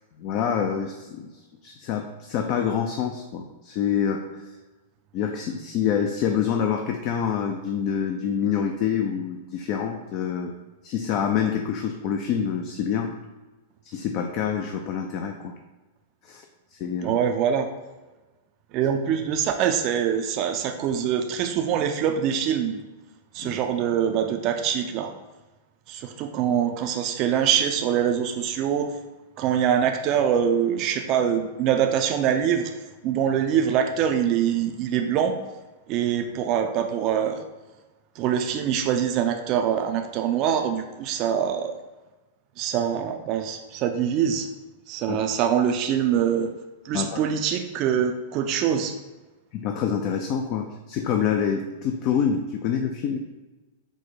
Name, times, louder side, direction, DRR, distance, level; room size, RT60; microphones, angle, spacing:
voice 1, 0.2-4.4 5.1-10.5 10.8-13.1 13.8-15.5 16.2-16.5 16.7-17.2 23.4-23.5 45.1-45.2 46.9-47.2 49.5-53.2, left 7 dB, 45° left, 4 dB, 0.4 m, -26 dB
voice 2, 17.0-17.7 18.7-22.8 23.3-25.1 25.9-28.9 29.4-32.7 33.0-35.4 35.9-37.4 38.2-41.7 42.6-44.5 44.9-46.5 46.8-48.9, right 8 dB, 40° right, 5 dB, 0.4 m, -24 dB
4.7 x 2.1 x 4.1 m, 1.2 s
hypercardioid pair, 115°, 0 cm